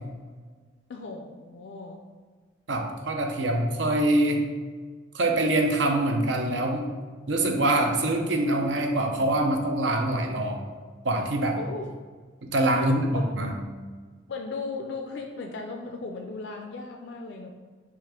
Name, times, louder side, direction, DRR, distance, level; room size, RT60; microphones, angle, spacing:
voice 1, 0.9-2.0 11.6-11.9 12.8-13.3 14.3-17.5, left 3 dB, 65° left, 3 dB, 0.4 m, -37 dB
voice 2, 2.7-4.4 5.1-6.9 7.3-10.6 11.0-11.6 12.4-13.5, right 1 dB, 75° right, 3 dB, 0.6 m, -24 dB
5.8 x 2.5 x 3.6 m, 1.5 s
head